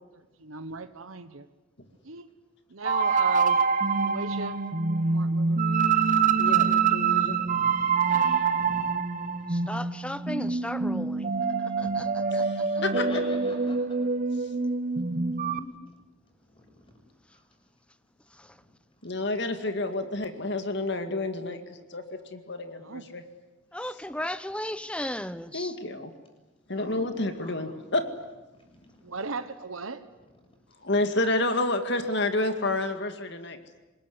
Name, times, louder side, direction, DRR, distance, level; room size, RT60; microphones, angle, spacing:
voice 1, 0.0-1.5 2.1-2.3 2.7-3.6 4.0-4.6 4.9-5.6 22.8-23.1 29.0-30.0, right 4 dB, 90° right, 10 dB, 1.2 m, -36 dB
sound 1, 2.8-15.6, right 5 dB, 40° right, 1.1 m, -25 dB
voice 2, 5.8-6.9 7.2-8.8 9.2-9.4 11.3-11.4 11.7-12.2 12.8-14.0 15.4-15.8 26.7-27.1 27.4-27.8 30.2-30.3, left 1 dB, 25° left, 2 dB, 7.4 m, -44 dB
voice 3, 6.3-7.4 12.3-12.6 19.0-22.0 22.3-23.2 25.5-26.1 26.7-28.0 30.8-33.8, left 2 dB, 55° left, 7 dB, 2.2 m, -29 dB
voice 4, 9.5-11.3 11.6-12.8 18.3-18.6 23.7-25.8, left 1 dB, 5° left, 13 dB, 0.9 m, -36 dB
26.0 x 21.0 x 9.7 m, 1.1 s
head